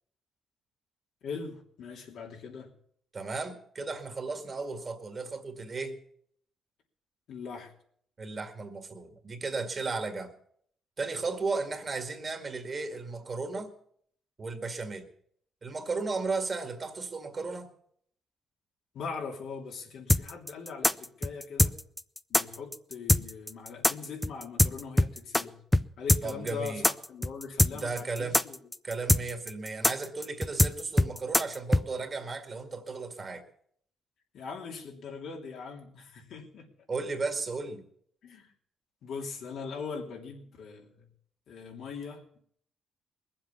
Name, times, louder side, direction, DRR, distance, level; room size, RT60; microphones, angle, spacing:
voice 1, 1.2-2.7 7.3-7.7 18.9-21.7 22.3-25.6 26.0-28.7 34.3-36.7 38.2-38.5 39.0-41.1 41.5-42.4, left 5 dB, 75° left, 1 dB, 3.0 m, -41 dB
voice 2, 3.1-6.0 8.2-10.3 11.0-13.7 14.4-15.1 15.6-17.7 26.2-26.9 27.7-28.4 28.8-33.4 36.9-37.8, right 4 dB, 35° right, 6 dB, 2.0 m, -35 dB
sound 1, 20.1-25.4 25.7-25.8 26.1-31.8, left 1 dB, 10° left, 0.5 m, -23 dB
20.5 x 7.8 x 7.1 m, 0.64 s
cardioid pair, 90°, 0 cm